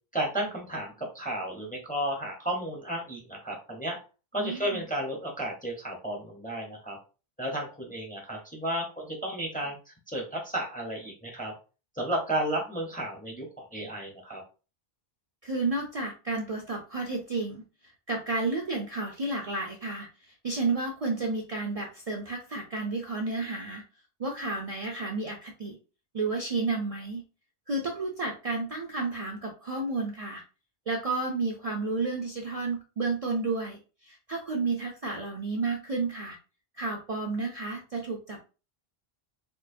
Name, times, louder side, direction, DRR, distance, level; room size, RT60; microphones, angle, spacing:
voice 1, 0.1-4.0 4.3-7.0 7.4-9.8 10.1-11.5 12.0-14.4, right 1 dB, 10° left, 0 dB, 0.6 m, -33 dB
voice 2, 4.4-4.8 15.4-20.1 20.4-23.8 24.2-25.8 26.1-27.2 27.7-30.4 30.9-36.4 36.7-38.4, right 3 dB, 45° right, 0 dB, 0.5 m, -31 dB
4.4 x 2.1 x 2.5 m, 0.33 s
omnidirectional pair, 1.0 m